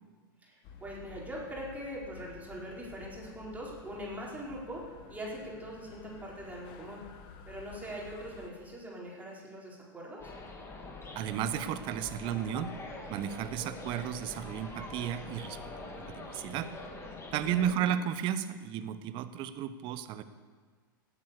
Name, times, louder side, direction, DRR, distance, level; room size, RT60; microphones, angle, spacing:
voice 1, 0.4-7.0 7.5-10.3 17.4-18.0, equal, 15° right, -4 dB, 4.8 m, -42 dB
sound 1, 0.6-8.5, left 6 dB, 50° left, 1.6 m, -52 dB
sound 2, 10.2-17.7, left 2 dB, 20° left, 2.7 m, -44 dB
voice 2, 11.1-12.7 13.1-16.7 17.3-20.2, right 10 dB, 45° right, 12 dB, 1.0 m, -33 dB
17.0 x 8.7 x 6.8 m, 1.5 s
hypercardioid pair, 105°, 12 cm